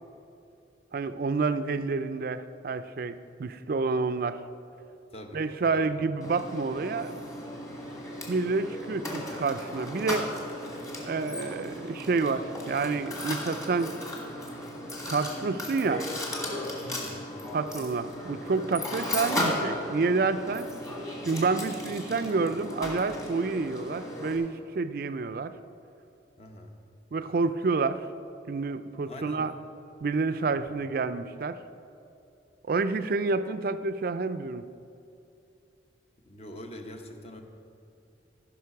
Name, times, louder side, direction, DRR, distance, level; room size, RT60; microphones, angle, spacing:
voice 1, 0.9-4.4 5.3-7.2 8.3-10.3 11.0-13.9 15.1-16.1 17.5-20.7 21.3-25.5 27.1-28.0 28.5-29.5 30.0-31.6 32.7-34.6, right 4 dB, 50° right, 12 dB, 0.4 m, -29 dB
voice 2, 5.1-5.9 16.8-17.3 26.4-26.8 29.0-29.5 30.4-30.8 36.3-37.4, left 1 dB, 35° left, 4 dB, 0.8 m, -44 dB
Mechanisms, 6.2-24.4, left 1 dB, 20° left, 1.6 m, -36 dB
14.0 x 5.6 x 5.8 m, 2.7 s
head